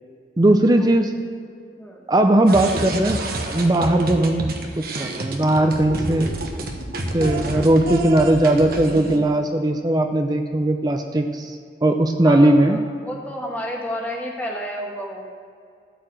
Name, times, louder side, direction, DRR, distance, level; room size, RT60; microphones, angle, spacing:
voice 1, 0.4-1.1 2.1-3.2 3.5-6.3 7.1-11.6 11.8-12.8, right 1 dB, 25° right, 5 dB, 0.5 m, -18 dB
voice 2, 1.8-2.1 12.2-15.3, equal, 10° left, -2 dB, 1.6 m, -31 dB
sound 1, 2.5-9.2, right 2 dB, 60° right, 1.1 m, -29 dB
13.5 x 4.7 x 7.8 m, 2.3 s
head